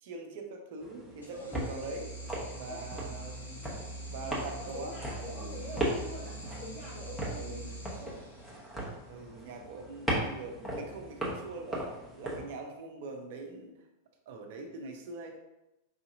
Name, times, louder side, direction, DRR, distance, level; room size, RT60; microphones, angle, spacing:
voice 1, 0.0-2.1 2.6-3.6 4.1-4.9 5.2-5.4 7.4-7.6 9.1-11.9 12.2-13.7 14.3-15.4, right 3 dB, 55° right, 3 dB, 0.5 m, -43 dB
sound 1, 0.8-12.4, right 1 dB, 5° left, 1.0 m, -38 dB
sound 2, 1.2-8.8, right 2 dB, 80° left, 0.8 m, -43 dB
voice 2, 1.3-1.7 2.7-2.8 3.1-3.3 4.2-8.2, left 1 dB, 50° left, -7 dB, 1.0 m, -45 dB
4.9 x 2.7 x 2.6 m, 0.94 s
figure-of-eight pair, 90°, 0 cm